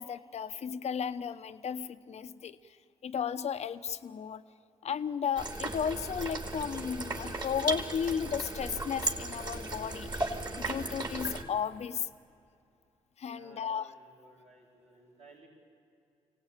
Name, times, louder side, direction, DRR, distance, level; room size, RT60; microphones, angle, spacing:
voice 1, 0.0-2.6 3.0-4.4 4.8-12.1 13.2-13.9, left 7 dB, 60° left, 11 dB, 0.9 m, -34 dB
sound 1, 5.4-11.4, right 2 dB, 35° right, 3.0 m, -36 dB
voice 2, 13.2-15.5, right 2 dB, 80° right, -5 dB, 4.9 m, -57 dB
24.0 x 17.5 x 9.0 m, 2.6 s
supercardioid pair, 55°, 13 cm